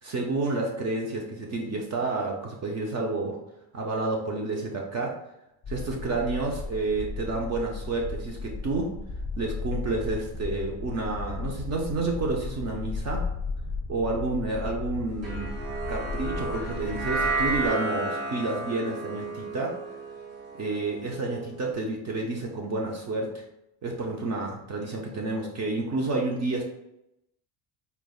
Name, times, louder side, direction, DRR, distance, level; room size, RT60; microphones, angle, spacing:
voice 1, 0.0-3.4 3.7-5.1 5.7-8.9 9.4-13.2 13.9-15.5 15.9-20.0 20.5-23.4 23.8-26.6, right 3 dB, 35° right, 0 dB, 0.5 m, -30 dB
sound 1, 5.6-17.7, left 3 dB, 25° left, 0.6 m, -35 dB
sound 2, 15.2-21.6, right 3 dB, 75° right, 1.3 m, -32 dB
4.0 x 3.3 x 2.2 m, 0.84 s
cardioid pair, 150°, 44 cm